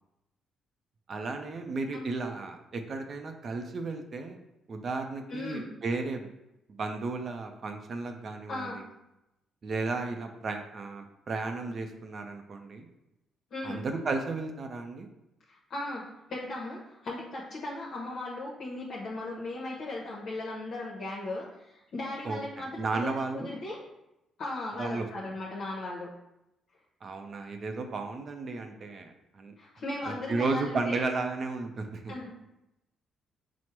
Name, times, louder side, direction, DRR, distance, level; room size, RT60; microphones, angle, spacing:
voice 1, 1.1-4.4 4.7-6.3 6.7-8.9 9.6-12.9 13.6-15.1 22.2-23.6 24.8-25.1 27.0-29.5 30.1-32.1, right 3 dB, 50° right, 5 dB, 0.5 m, -34 dB
voice 2, 5.3-5.7 8.5-8.8 13.5-13.8 15.5-16.0 16.3-23.8 24.4-26.1 29.6-31.0 32.1-32.3, left 2 dB, 65° left, -5 dB, 0.8 m, -37 dB
4.4 x 2.0 x 4.5 m, 0.89 s
cardioid pair, 90°, 0 cm